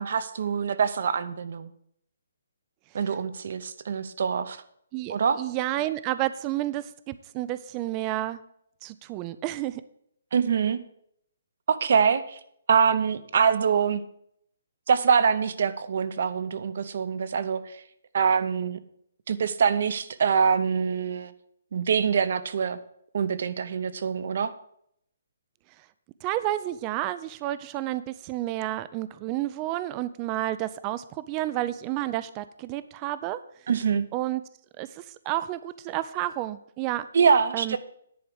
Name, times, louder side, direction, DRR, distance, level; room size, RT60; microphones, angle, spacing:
voice 1, 0.0-1.7 2.9-4.6 5.1-5.4 10.3-10.8 11.7-12.4 12.7-14.0 14.9-17.8 18.1-18.8 19.3-21.3 21.7-22.8 23.1-24.5 33.7-34.1 37.1-37.8, right 6 dB, 45° right, 14 dB, 0.7 m, -24 dB
voice 2, 4.9-8.4 8.8-9.8 26.2-33.4 34.1-34.4 34.8-37.1 37.5-37.8, right 15 dB, 15° right, 15 dB, 0.3 m, -30 dB
10.5 x 4.7 x 7.9 m, 0.71 s
hypercardioid pair, 175°, 0 cm